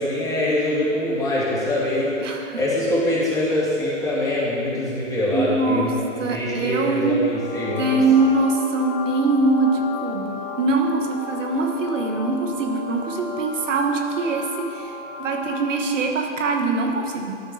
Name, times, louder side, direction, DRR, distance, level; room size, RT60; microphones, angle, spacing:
voice 1, 0.0-2.2 2.5-8.0, left 1 dB, 10° left, -8 dB, 2.1 m, -23 dB
voice 2, 2.2-2.6 5.3-7.2 7.8-14.9 15.2-17.4, right 3 dB, 80° right, 3 dB, 1.2 m, -23 dB
sound 1, 7.2-16.1, left 5 dB, 40° left, 1.0 m, -34 dB
12.5 x 4.5 x 5.4 m, 2.6 s
hypercardioid pair, 135°, 37 cm